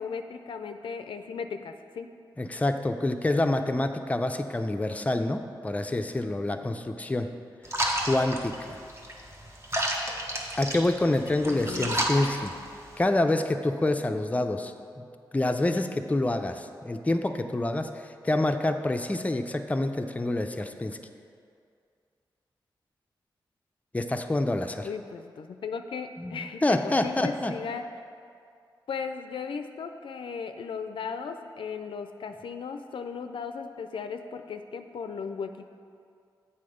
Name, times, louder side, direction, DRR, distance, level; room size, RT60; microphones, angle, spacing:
voice 1, 0.0-2.1 11.4-12.1 24.8-27.9 28.9-35.7, left 5 dB, 75° left, 7 dB, 0.4 m, -36 dB
voice 2, 2.4-7.3 8.0-8.8 10.6-12.5 13.0-15.0 15.3-21.0 23.9-24.9 26.2-27.5, left 2 dB, 15° left, 6 dB, 0.4 m, -27 dB
sound 1, 7.7-13.1, right 1 dB, 30° right, 1.0 m, -32 dB
7.6 x 4.2 x 5.0 m, 2.3 s
cardioid pair, 50°, 9 cm